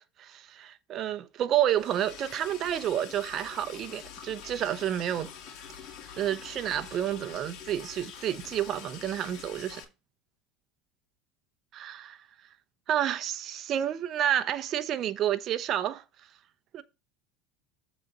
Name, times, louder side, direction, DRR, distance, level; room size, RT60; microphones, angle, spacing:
voice 1, 0.0-5.3 6.2-9.8 11.7-12.2 12.9-16.0 16.7-16.8, right 11 dB, 45° right, 0.8 m, -30 dB
Liquid, 1.7-9.8, left 8 dB, 50° left, 2.3 m, -46 dB
7.4 x 4.1 x 5.5 m
supercardioid pair, 115°, 0 cm